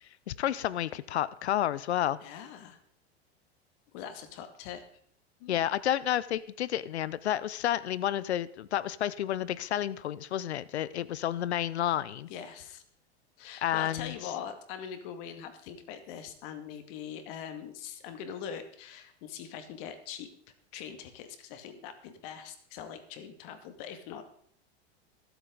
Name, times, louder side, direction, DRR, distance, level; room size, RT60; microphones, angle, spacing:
voice 1, 0.3-2.2 5.5-12.3 13.6-14.1, left 11 dB, 90° left, 19 dB, 0.6 m, -30 dB
voice 2, 2.2-2.8 3.9-4.8 5.4-5.6 12.3-12.8 13.4-20.3 20.7-24.2, left 8 dB, 60° left, 8 dB, 2.2 m, -42 dB
24.0 x 8.0 x 3.9 m, 0.65 s
hypercardioid pair, 95°, 32 cm